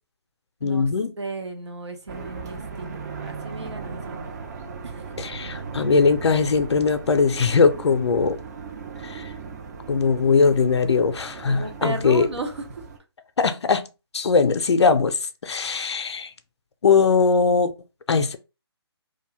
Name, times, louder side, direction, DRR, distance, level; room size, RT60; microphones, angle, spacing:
voice 1, 0.6-1.1 5.2-8.4 9.0-9.3 9.9-12.3 13.4-13.9 14.1-16.3 16.8-17.7 18.1-18.4, left 5 dB, 80° left, 0.4 m, -20 dB
voice 2, 1.2-4.3 4.8-5.0 11.5-12.9, right 2 dB, 90° right, 0.8 m, -34 dB
sound 1, 2.1-13.0, right 5 dB, 40° right, 0.5 m, -37 dB
2.5 x 2.2 x 3.0 m
hypercardioid pair, 150°, 14 cm